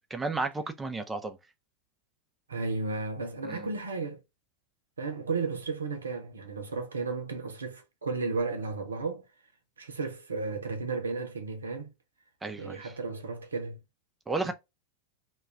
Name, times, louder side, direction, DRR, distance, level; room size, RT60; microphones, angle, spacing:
voice 1, 0.1-1.4 3.4-3.6 12.4-12.9 14.3-14.5, right 3 dB, 10° right, 0.4 m, -33 dB
voice 2, 2.5-4.2 5.0-9.2 9.8-11.9 12.6-13.8, right 4 dB, 70° right, 0.6 m, -34 dB
2.3 x 2.3 x 3.3 m
figure-of-eight pair, 90°, 0 cm